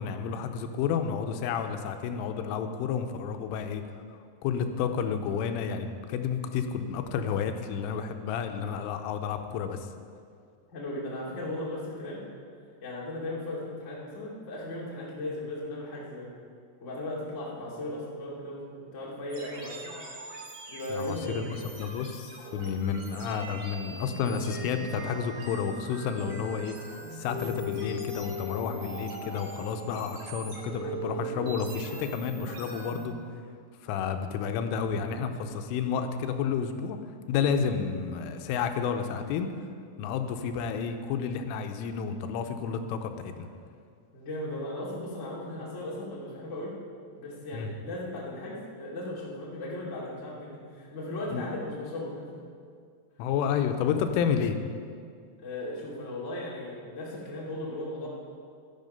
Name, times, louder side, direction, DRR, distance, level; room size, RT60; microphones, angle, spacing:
voice 1, 0.0-4.0 4.4-9.9 20.9-26.8 27.1-33.2 33.8-37.0 37.3-39.7 40.0-43.5 47.5-47.7 51.3-51.5 53.2-54.6, left 7 dB, 90° left, 7 dB, 3.2 m, -31 dB
voice 2, 10.7-12.2 12.8-16.3 16.8-19.9 20.7-21.7 44.1-46.7 47.2-52.4 55.4-58.1, left 1 dB, 35° left, -5 dB, 1.1 m, -37 dB
sound 1, 19.3-33.1, equal, 55° right, 3.8 m, -40 dB
12.0 x 10.5 x 5.3 m, 2.2 s
omnidirectional pair, 5.7 m